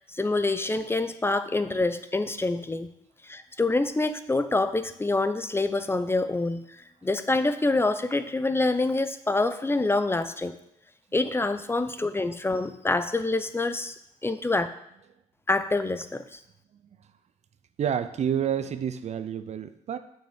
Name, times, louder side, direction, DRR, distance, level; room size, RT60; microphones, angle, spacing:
voice 1, 0.1-2.9 3.2-6.6 7.0-10.6 11.1-13.9 14.2-14.7 15.5-16.4, left 2 dB, 15° left, 11 dB, 0.7 m, -26 dB
voice 2, 17.8-20.0, right 8 dB, 50° right, 11 dB, 0.7 m, -29 dB
6.5 x 6.4 x 6.4 m, 0.76 s
supercardioid pair, 65°, 14 cm